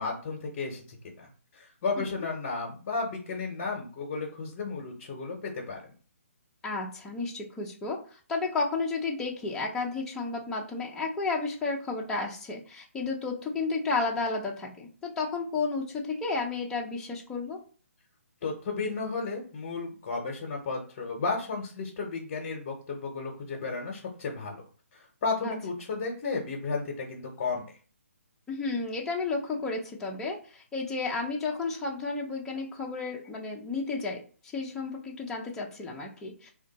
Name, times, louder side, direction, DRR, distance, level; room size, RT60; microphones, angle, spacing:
voice 1, 0.0-5.8 18.4-24.6 24.9-27.6, left 4 dB, 35° left, -1 dB, 0.8 m, -33 dB
voice 2, 6.6-8.0 8.3-17.6 25.4-25.6 28.5-34.2 34.5-36.5, left 3 dB, 5° left, -2 dB, 0.5 m, -32 dB
2.4 x 2.3 x 3.9 m, 0.40 s
hypercardioid pair, 155°, 8 cm